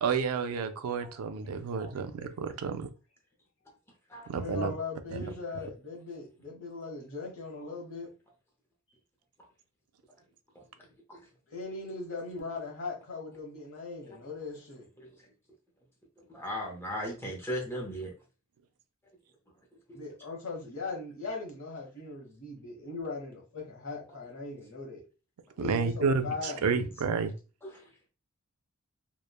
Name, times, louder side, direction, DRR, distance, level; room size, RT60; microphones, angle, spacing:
voice 1, 0.0-2.7 4.3-4.7 5.1-5.2 25.6-27.3, right 5 dB, 85° right, 0.4 m, -30 dB
voice 2, 4.3-8.1 11.5-14.9 19.9-25.0 25.6-26.9, left 3 dB, 65° left, 1.0 m, -39 dB
voice 3, 16.3-18.1 27.6-27.8, equal, 10° left, 0.6 m, -37 dB
3.0 x 2.1 x 2.2 m
head